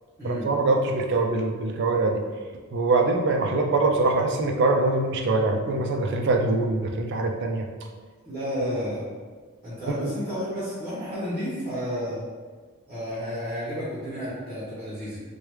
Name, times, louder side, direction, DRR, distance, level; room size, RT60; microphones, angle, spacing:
voice 1, 0.2-2.2 2.7-7.7 8.6-8.7 9.9-10.1, right 3 dB, 55° right, 2 dB, 0.3 m, -23 dB
voice 2, 8.2-9.0 9.6-12.2 12.9-15.2, equal, 15° right, -10 dB, 0.8 m, -31 dB
3.1 x 2.2 x 3.0 m, 1.5 s
head